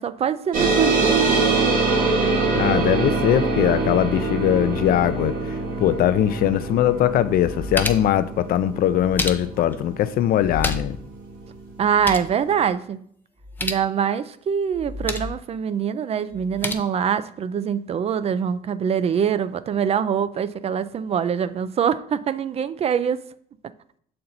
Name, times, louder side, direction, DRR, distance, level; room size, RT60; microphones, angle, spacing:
voice 1, 0.0-1.5 11.8-13.0 13.6-23.2, right 8 dB, 35° right, 0.4 m, -24 dB
sound 1, 0.5-11.5, right 3 dB, 55° right, 1.5 m, -24 dB
voice 2, 2.5-5.3 5.8-11.0, left 11 dB, 60° left, 0.4 m, -21 dB
sound 2, 6.7-6.8 7.3-8.2 8.9-9.7 10.4-11.1 11.3-11.4 11.8-12.3 13.4-13.9 14.7-15.4 16.3-16.7, left 2 dB, 10° left, 0.6 m, -30 dB
6.5 x 4.3 x 3.9 m
cardioid pair, 110°, 17 cm